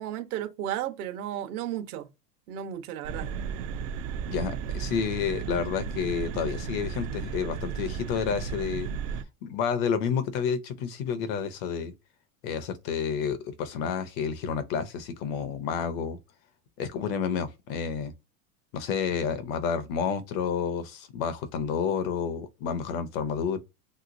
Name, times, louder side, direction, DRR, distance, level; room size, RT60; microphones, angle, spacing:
voice 1, 0.0-2.1 2.5-3.3, right 11 dB, 70° right, 0.9 m, -34 dB
sound 1, 3.0-9.2, right 6 dB, 55° right, 0.5 m, -34 dB
voice 2, 4.3-8.9 9.4-11.9 12.4-16.2 16.8-18.1 18.7-23.6, left 6 dB, 40° left, 0.4 m, -30 dB
3.2 x 2.8 x 2.5 m
supercardioid pair, 160°, 46 cm